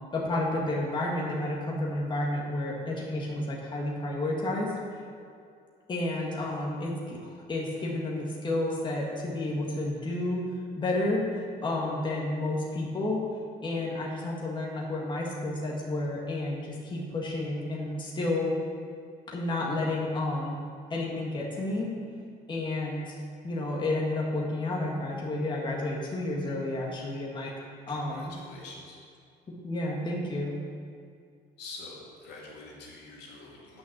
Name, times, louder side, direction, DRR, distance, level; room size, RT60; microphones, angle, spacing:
voice 1, 0.1-4.7 5.9-10.4 10.8-11.3 11.6-13.2 13.6-18.5 19.3-20.6 20.9-21.9 22.5-23.2 23.4-27.5 27.9-28.3 29.5-30.6, left 2 dB, 30° left, -3 dB, 1.8 m, -31 dB
voice 2, 27.9-29.0 31.6-33.8, left 3 dB, 80° left, -4 dB, 2.7 m, -46 dB
9.2 x 6.0 x 7.4 m, 2.3 s
cardioid pair, 110°, 17 cm